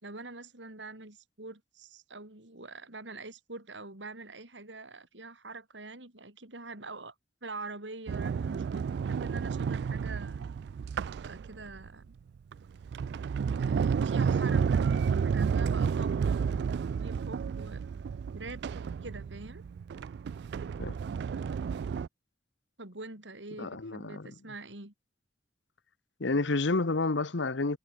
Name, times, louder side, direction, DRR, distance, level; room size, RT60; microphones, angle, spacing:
voice 1, 0.0-7.1 7.4-10.5 11.2-12.2 13.6-17.8 18.3-19.6 22.8-24.9, right 3 dB, 85° right, 4.8 m, -45 dB
Sliding door, 8.1-11.9 12.5-22.1, right 6 dB, 65° right, 0.3 m, -31 dB
voice 2, 23.6-24.3 26.2-27.8, left 3 dB, 90° left, 1.0 m, -30 dB
head